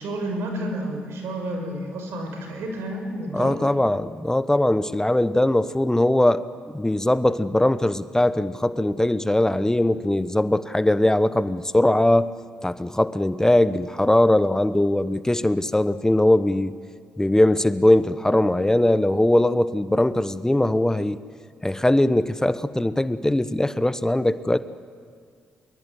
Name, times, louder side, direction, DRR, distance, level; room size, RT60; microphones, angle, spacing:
voice 1, 0.0-3.7, right 1 dB, 75° right, 3 dB, 5.8 m, -30 dB
voice 2, 3.3-12.3 12.6-16.7 17.2-21.2 21.6-24.6, left 1 dB, 10° left, 14 dB, 1.0 m, -20 dB
23.0 x 22.5 x 9.8 m, 2.1 s
hypercardioid pair, 45°, 4 cm